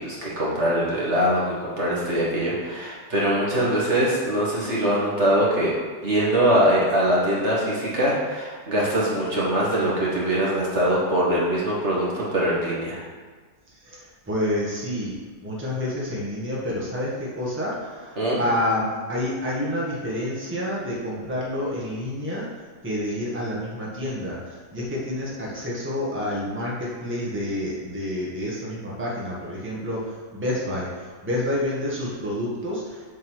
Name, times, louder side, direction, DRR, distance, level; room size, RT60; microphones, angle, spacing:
voice 1, 0.0-5.7 6.0-13.0 18.2-18.4, equal, 45° right, -6 dB, 1.8 m, -22 dB
voice 2, 13.8-15.1 15.4-33.1, left 1 dB, 5° right, -6 dB, 1.5 m, -29 dB
7.4 x 4.2 x 6.3 m, 1.5 s
omnidirectional pair, 1.8 m